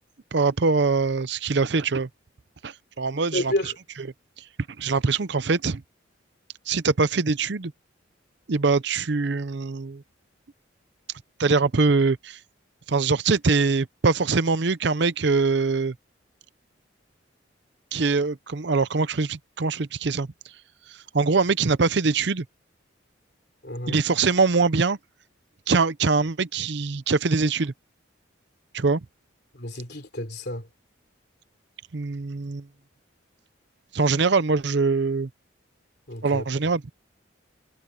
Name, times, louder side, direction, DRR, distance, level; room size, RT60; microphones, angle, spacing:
voice 1, 0.3-2.1 2.6-3.7 4.4-4.5 4.8-5.8 6.7-7.7 8.5-10.0 11.4-12.4 12.9-15.9 17.9-20.3 20.9-22.4 23.9-25.0 25.7-27.7 28.7-29.0 31.9-32.7 33.9-35.3 36.2-36.8, right 4 dB, 60° right, 0.6 m, -23 dB
voice 2, 3.3-3.7 23.6-24.0 29.5-30.7 36.1-36.4, left 1 dB, 55° left, 3.4 m, -30 dB
head